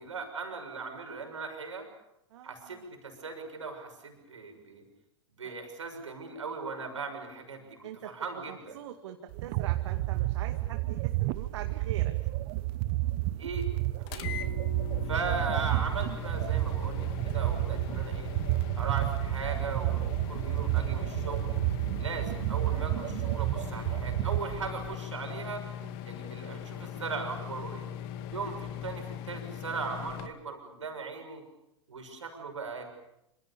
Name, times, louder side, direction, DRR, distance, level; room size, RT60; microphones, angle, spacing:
voice 1, 0.0-1.9 2.4-4.8 5.4-7.8 8.0-8.8 13.4-13.7 14.1-14.3 15.1-18.3 18.8-21.6 22.0-25.6 26.0-27.8 28.3-31.4 31.9-32.9, right 4 dB, 90° right, 5 dB, 6.6 m, -38 dB
voice 2, 2.3-2.9 5.4-5.5 7.8-12.2 20.7-21.2 22.0-22.1 25.8-26.0, right 10 dB, 70° right, 5 dB, 2.2 m, -44 dB
sound 1, 9.3-25.0, right 18 dB, 55° right, 1.0 m, -31 dB
sound 2, 14.1-30.3, left 10 dB, 55° left, 2.3 m, -40 dB
26.5 x 26.5 x 7.0 m, 0.85 s
hypercardioid pair, 100°, 15 cm